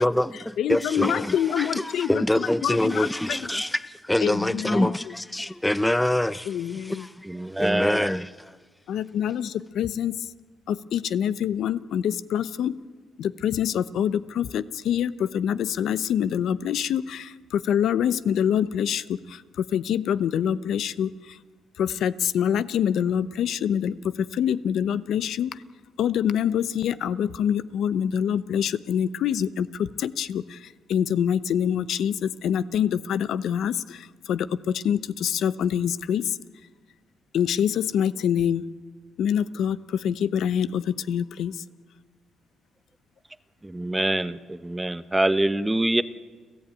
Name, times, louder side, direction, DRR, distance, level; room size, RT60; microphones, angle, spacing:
voice 1, 0.0-8.6, left 1 dB, 5° left, 0.6 m, -26 dB
voice 2, 0.6-3.6 4.2-5.1 6.5-7.1 8.9-10.3 10.7-12.7 13.2-21.4 21.8-25.6 26.0-36.4 37.3-38.6 39.2-41.6, left 9 dB, 75° left, 0.8 m, -26 dB
voice 3, 7.3-8.1 43.6-46.0, right 1 dB, 10° right, 1.0 m, -25 dB
30.0 x 14.5 x 9.2 m
cardioid pair, 90°, 0 cm